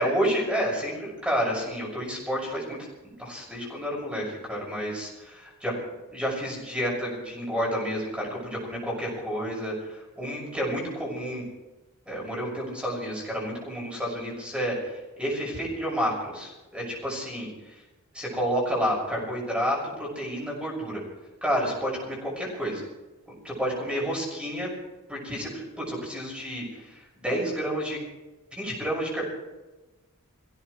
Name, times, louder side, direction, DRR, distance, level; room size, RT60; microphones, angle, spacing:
voice 1, 0.0-2.8 3.0-5.7 6.1-11.4 12.1-17.5 18.1-21.0 21.4-22.8 23.3-24.7 25.1-28.0 28.5-29.2, equal, 5° right, -3 dB, 6.3 m, -30 dB
26.0 x 16.5 x 3.3 m, 1.1 s
head